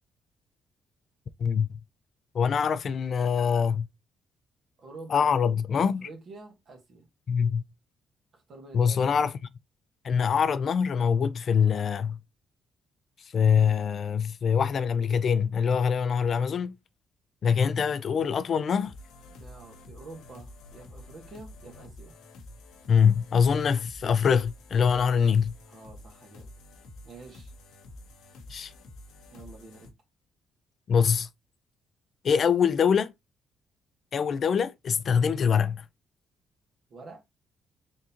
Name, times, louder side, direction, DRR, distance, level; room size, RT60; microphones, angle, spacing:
voice 1, 1.4-1.8 2.3-3.9 5.1-6.1 7.3-7.6 8.7-9.3 10.0-12.2 13.3-16.7 17.4-18.9 22.9-25.5 28.5-28.7 30.9-31.3 32.2-33.1 34.1-35.8, left 7 dB, 55° left, 0.4 m, -24 dB
voice 2, 4.8-5.3 5.8-7.1 8.3-9.3 19.3-22.2 25.7-26.5 27.0-27.5 29.3-29.9 36.9-37.2, right 3 dB, 55° right, 1.7 m, -47 dB
sound 1, 18.8-29.9, left 2 dB, 90° left, 1.0 m, -49 dB
3.7 x 3.5 x 2.9 m
cardioid pair, 90°, 0 cm